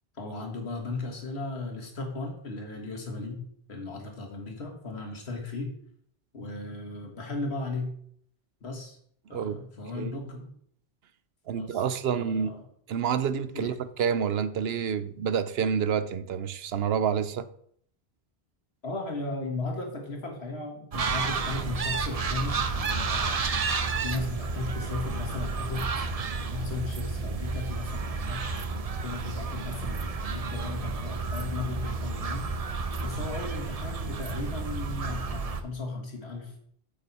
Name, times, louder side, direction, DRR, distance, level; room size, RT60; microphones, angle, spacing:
voice 1, 0.1-5.7 6.3-7.9 8.6-9.0 9.3-10.5 11.6-11.8 12.1-12.6 13.5-13.8 18.8-23.5 24.0-26.1 26.5-28.6 29.0-32.5 33.0-36.5, left 3 dB, 80° left, 2.0 m, -36 dB
voice 2, 9.3-9.6 9.9-10.2 11.5-12.5 12.9-17.5, right 7 dB, 75° right, 0.8 m, -28 dB
sound 1, 20.9-35.6, right 4 dB, 40° right, 0.7 m, -31 dB
8.9 x 7.5 x 4.2 m
omnidirectional pair, 1.1 m